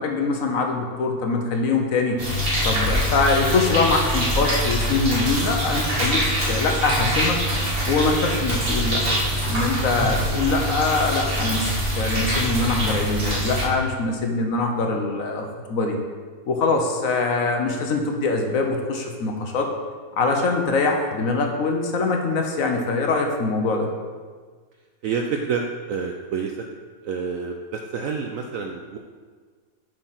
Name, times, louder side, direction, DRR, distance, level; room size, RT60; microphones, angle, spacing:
voice 1, 0.0-2.2 2.6-7.4 7.9-9.0 9.5-16.0 16.5-19.7 20.2-23.9, left 3 dB, 55° left, 3 dB, 1.2 m, -23 dB
sound 1, 2.2-13.6, equal, 35° right, 1.7 m, -24 dB
voice 2, 25.0-26.7 27.0-29.0, right 5 dB, 75° right, 3 dB, 0.8 m, -28 dB
7.7 x 4.5 x 5.8 m, 1.5 s
omnidirectional pair, 1.9 m